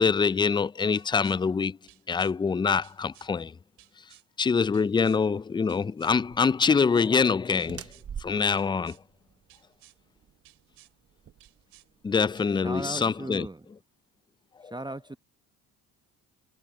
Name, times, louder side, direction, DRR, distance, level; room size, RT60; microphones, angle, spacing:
voice 1, 0.0-1.8 2.1-3.5 4.4-7.9 8.2-9.0 12.0-13.5 14.6-14.7, left 5 dB, 15° left, 0.3 m, -25 dB
sound 1, 0.9-1.4 1.9-2.3 2.8-3.3 3.8-4.3 4.7-5.2 5.7-6.2 6.6-7.1 7.6-8.1 8.5-9.0 9.5-10.0 10.4-10.9 11.4-11.9 12.3-12.5, right 17 dB, 80° right, 3.1 m, -57 dB
sound 2, 6.1-12.2, right 8 dB, 35° right, 0.8 m, -46 dB
voice 2, 12.4-13.7 14.6-15.2, right 2 dB, 10° right, 1.0 m, -37 dB
supercardioid pair, 65°, 40 cm